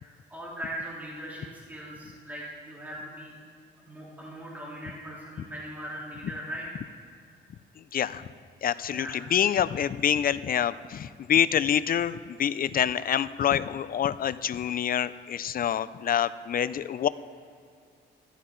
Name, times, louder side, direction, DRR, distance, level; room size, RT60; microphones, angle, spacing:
voice 1, 0.0-3.3 3.8-6.7 8.9-9.3, right 1 dB, 10° right, -6 dB, 3.5 m, -40 dB
voice 2, 7.9-8.2 8.6-17.1, left 9 dB, 45° left, 16 dB, 0.5 m, -26 dB
14.0 x 12.0 x 3.9 m, 2.3 s
cardioid pair, 90°, 20 cm